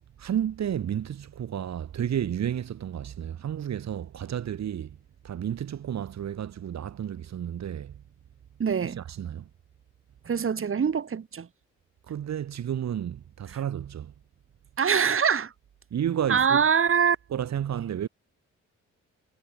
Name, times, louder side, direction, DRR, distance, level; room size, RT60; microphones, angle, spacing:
voice 1, 0.2-5.0 5.2-8.0 8.8-9.5 12.1-14.1 15.9-16.6 17.3-18.1, right 9 dB, 60° right, 4.6 m, -31 dB
voice 2, 8.6-9.0 10.3-11.5 14.8-15.5 16.3-17.2, right 7 dB, 45° right, 5.4 m, -23 dB
cardioid pair, 90°, 30 cm